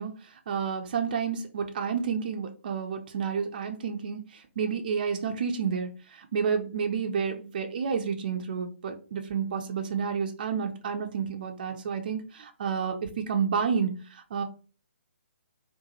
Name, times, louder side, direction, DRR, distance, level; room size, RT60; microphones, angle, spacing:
voice 1, 0.0-14.4, right 6 dB, 40° right, 4 dB, 0.4 m, -30 dB
3.8 x 2.2 x 2.8 m, 0.37 s
figure-of-eight pair, 135°, 7 cm